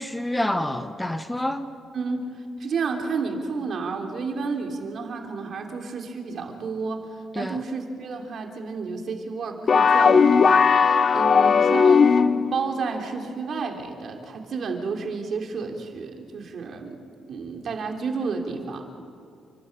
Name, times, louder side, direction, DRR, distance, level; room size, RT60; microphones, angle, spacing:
voice 1, 0.0-1.7 7.3-7.6, left 1 dB, 10° left, 9 dB, 1.0 m, -27 dB
voice 2, 1.9-17.0 17.3-18.8, right 4 dB, 55° right, 2 dB, 3.1 m, -31 dB
sound 1, 9.7-12.6, left 6 dB, 45° left, 0.7 m, -17 dB
28.5 x 12.0 x 8.7 m, 2.4 s
cardioid pair, 90°, 0 cm